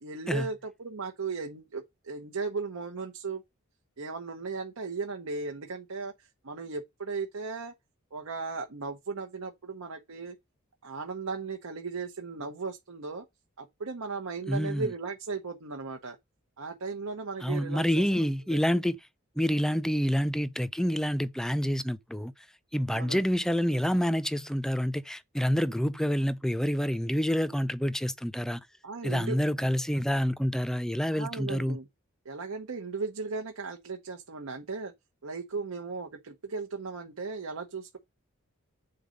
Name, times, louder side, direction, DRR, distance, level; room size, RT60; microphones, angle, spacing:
voice 1, 0.0-3.4 4.0-7.7 8.1-10.3 10.8-13.2 13.6-16.2 16.6-18.6 22.9-23.2 28.8-29.7 31.1-31.9 32.2-34.9 35.2-38.0, right 4 dB, 85° right, 0.9 m, -36 dB
voice 2, 14.5-14.9 17.4-19.0 19.4-22.3 22.7-28.6 29.0-31.8, equal, 5° left, 0.4 m, -28 dB
8.7 x 4.0 x 5.1 m
head